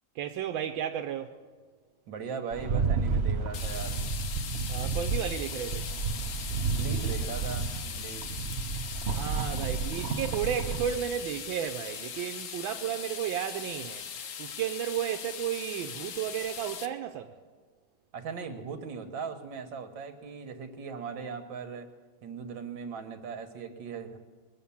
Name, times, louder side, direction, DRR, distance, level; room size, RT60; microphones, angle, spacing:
voice 1, 0.2-1.3 4.7-5.8 9.1-14.0 14.4-17.3, right 10 dB, 85° right, 1.4 m, -33 dB
voice 2, 2.1-4.0 6.6-8.3 18.1-21.9 22.2-24.2, right 5 dB, 70° right, 1.9 m, -39 dB
Rattle, 2.5-11.0, right 4 dB, 50° right, 0.8 m, -31 dB
sound 1, 3.5-16.9, left 8 dB, 55° left, 0.9 m, -40 dB
22.5 x 7.5 x 7.1 m
omnidirectional pair, 2.1 m